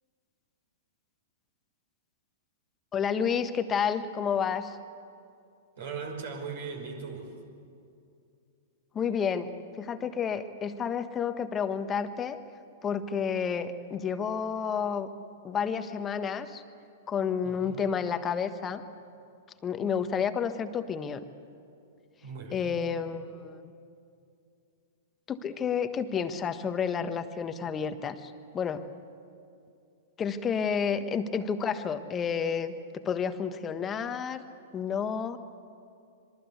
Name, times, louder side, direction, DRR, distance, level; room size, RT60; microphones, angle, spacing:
voice 1, 2.9-4.8 8.9-12.4 12.8-15.1 15.4-16.6 17.1-18.8 19.6-21.3 22.5-23.7 25.3-28.8 30.2-34.4 34.7-35.4, left 7 dB, 20° left, 9 dB, 1.4 m, -30 dB
voice 2, 5.8-7.3 17.4-17.9 22.2-22.8, right 5 dB, 55° right, 4 dB, 5.5 m, -39 dB
26.5 x 22.5 x 8.4 m, 2.5 s
figure-of-eight pair, 105°, 0 cm